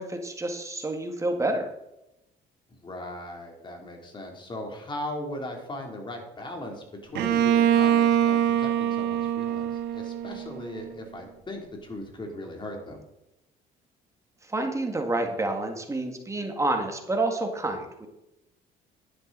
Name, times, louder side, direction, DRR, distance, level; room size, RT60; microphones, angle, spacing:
voice 1, 0.0-1.7 14.4-18.1, right 2 dB, 20° right, 4 dB, 1.9 m, -29 dB
voice 2, 2.7-13.0, left 1 dB, 30° left, 2 dB, 3.1 m, -38 dB
Bowed string instrument, 7.2-10.9, right 10 dB, 80° right, 1.2 m, -24 dB
11.5 x 9.8 x 4.0 m, 0.87 s
cardioid pair, 110°, 17 cm